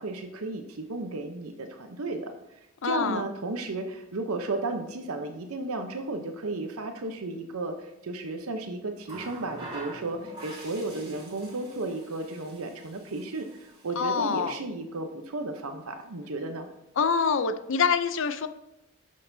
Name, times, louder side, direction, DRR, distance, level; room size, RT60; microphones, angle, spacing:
voice 1, 0.0-16.7, right 2 dB, 80° right, 5 dB, 0.8 m, -34 dB
voice 2, 2.8-3.2 14.0-14.5 17.0-18.5, left 6 dB, 60° left, 11 dB, 0.5 m, -25 dB
Water tap faucet, 9.0-14.6 15.8-16.0, right 2 dB, 25° right, 2.5 m, -46 dB
11.0 x 6.5 x 2.7 m, 0.88 s
head